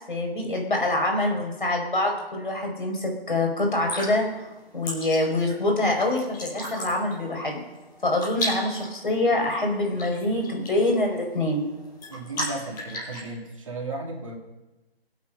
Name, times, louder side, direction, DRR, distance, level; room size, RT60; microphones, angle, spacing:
voice 1, 0.1-4.3 4.7-7.6 8.0-11.7, left 2 dB, 55° left, 2 dB, 4.8 m, -25 dB
sound 1, 3.7-13.2, left 1 dB, 20° left, 6.1 m, -36 dB
voice 2, 12.1-14.4, right 2 dB, 30° right, 0 dB, 2.6 m, -35 dB
24.0 x 8.4 x 5.5 m, 1.1 s
figure-of-eight pair, 155°, 31 cm